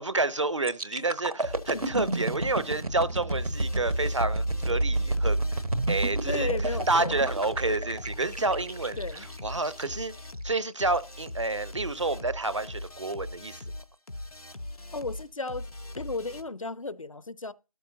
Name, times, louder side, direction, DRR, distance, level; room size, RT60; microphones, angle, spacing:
voice 1, 0.0-5.4 5.9-6.5 6.9-9.0 9.4-10.1 10.4-13.6, right 2 dB, 55° right, 0.7 m, -29 dB
sound 1, 0.6-10.5 10.9-11.1, right 2 dB, 80° right, 1.2 m, -30 dB
sound 2, 1.4-16.4, left 1 dB, 90° left, 1.6 m, -41 dB
voice 2, 6.3-7.1 9.0-9.3 14.9-15.7 16.0-17.5, left 3 dB, 65° left, 0.7 m, -34 dB
15.5 x 12.5 x 2.8 m
figure-of-eight pair, 175°, 18 cm